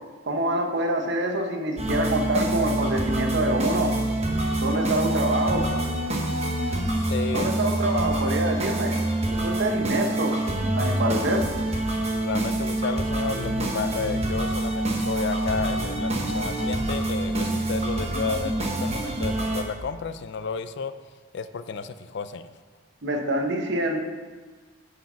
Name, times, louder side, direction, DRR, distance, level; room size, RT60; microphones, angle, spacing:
voice 1, 0.3-3.9 4.6-5.7 7.3-9.0 9.3-10.4 10.8-11.4 23.0-24.0, right 1 dB, 55° right, 3 dB, 0.9 m, -26 dB
sound 1, 1.8-19.6, right 1 dB, 30° right, 1.0 m, -26 dB
voice 2, 7.1-7.5 12.0-20.9 21.3-22.5, left 5 dB, 55° left, 12 dB, 0.4 m, -32 dB
9.1 x 4.9 x 5.6 m, 1.5 s
head